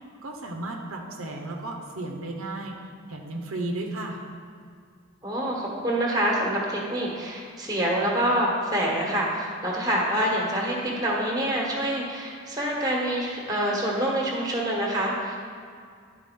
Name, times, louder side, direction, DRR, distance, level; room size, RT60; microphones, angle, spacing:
voice 1, 0.2-2.8 3.1-4.2, right 2 dB, 90° right, 1 dB, 0.9 m, -34 dB
voice 2, 5.2-15.4, right 1 dB, 20° right, -2 dB, 1.3 m, -26 dB
11.0 x 4.8 x 3.7 m, 2.2 s
head